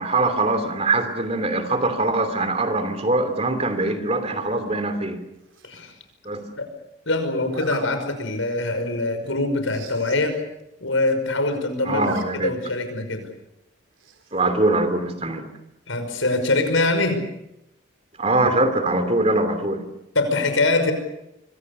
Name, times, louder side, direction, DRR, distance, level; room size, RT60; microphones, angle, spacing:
voice 1, 0.0-5.2 6.2-6.4 11.8-12.5 14.3-15.5 18.2-19.9, right 2 dB, 30° right, 9 dB, 2.9 m, -22 dB
Zipper (clothing), 5.5-5.9 7.5-7.9 8.4-8.6 8.9-9.0 9.2-9.3 9.6-10.2 10.6-10.7 10.9-11.4 11.7-12.2 12.6-12.7 14.0-14.4, right 3 dB, 75° right, 3.7 m, -37 dB
voice 2, 7.1-10.4 10.8-12.1 12.4-13.3 15.9-17.2 20.1-20.9, left 2 dB, 80° left, 7 dB, 5.7 m, -23 dB
26.0 x 25.0 x 6.8 m, 0.84 s
head